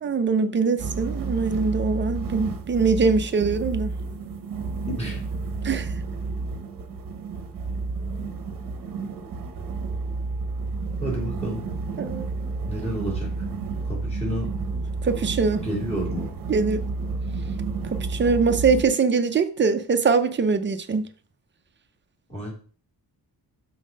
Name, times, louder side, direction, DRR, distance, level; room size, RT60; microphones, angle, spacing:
voice 1, 0.0-3.9 5.6-5.9 12.0-12.2 15.0-15.7 16.5-16.8 17.9-21.1, right 4 dB, 25° right, 0.5 m, -23 dB
sound 1, 0.8-18.8, right 4 dB, 50° right, 0.9 m, -31 dB
voice 2, 4.9-5.2 11.0-11.6 12.7-13.3 13.9-14.5 15.6-16.3 22.3-22.5, equal, 15° left, 2.7 m, -30 dB
5.6 x 4.2 x 5.2 m
wide cardioid pair, 175°, 42 cm